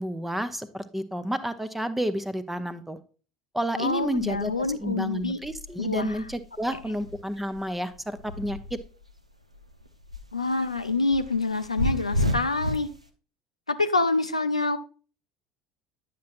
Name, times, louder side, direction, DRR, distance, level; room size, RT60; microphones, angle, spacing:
voice 1, 0.0-3.0 3.5-4.5 4.8-8.6, equal, 5° right, 12 dB, 0.7 m, -30 dB
voice 2, 3.8-5.4 5.8-6.2 6.7-6.8 10.3-12.9 13.7-14.8, left 3 dB, 85° left, 9 dB, 0.4 m, -26 dB
sound 1, 3.9-9.2 9.5-13.0, left 1 dB, 90° right, 0.5 m, -33 dB
9.4 x 5.9 x 2.5 m, 0.37 s
figure-of-eight pair, 65°, 3 cm